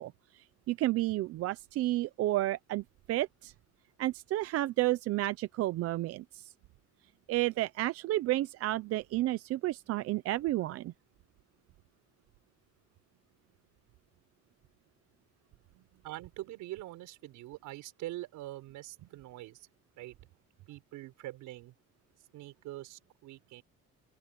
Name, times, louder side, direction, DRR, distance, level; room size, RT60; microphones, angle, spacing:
voice 1, 0.0-3.5 4.0-6.5 7.3-10.9, right 16 dB, 50° right, 0.5 m, -31 dB
voice 2, 16.0-19.7 20.0-20.2 20.7-21.7 22.3-23.6, right 16 dB, 70° right, 6.3 m, -44 dB
open air
cardioid pair, 175°, 32 cm